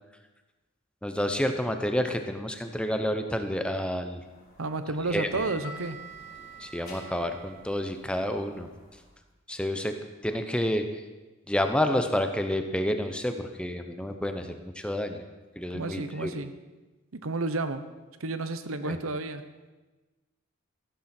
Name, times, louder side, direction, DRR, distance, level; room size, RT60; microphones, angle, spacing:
voice 1, 1.0-4.2 5.1-5.3 6.6-8.7 9.5-9.9 10.2-10.9 11.5-15.2 15.6-16.3 18.8-19.0, left 1 dB, 5° left, 6 dB, 0.8 m, -29 dB
sound 1, 4.2-9.1, right 2 dB, 45° left, 3.6 m, -47 dB
voice 2, 4.6-6.0 15.7-16.5 17.1-17.9 18.2-19.4, right 3 dB, 85° right, 10 dB, 0.9 m, -31 dB
14.5 x 12.5 x 4.4 m, 1.2 s
head